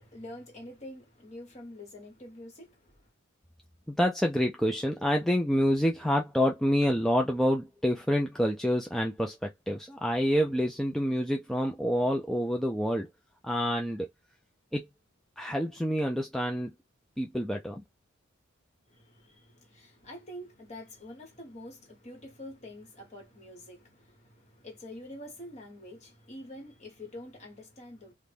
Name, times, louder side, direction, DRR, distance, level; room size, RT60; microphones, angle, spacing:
voice 1, 0.0-3.1 18.9-28.1, left 1 dB, 35° left, 1.3 m, -46 dB
voice 2, 3.9-13.1 13.4-14.1 14.7-14.9 15.4-16.7 17.2-17.8, equal, ahead, 0.3 m, -27 dB
2.5 x 2.1 x 3.3 m
head